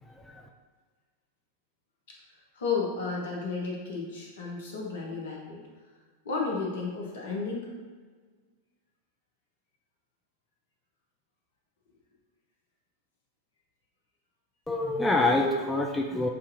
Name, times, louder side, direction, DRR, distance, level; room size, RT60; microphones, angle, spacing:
voice 1, 0.0-0.4 14.7-16.3, left 2 dB, 10° left, 1 dB, 0.3 m, -26 dB
voice 2, 2.5-5.6 6.2-7.7, left 4 dB, 60° left, -2 dB, 1.0 m, -32 dB
6.8 x 2.7 x 2.6 m, 1.5 s
figure-of-eight pair, 90°, 0 cm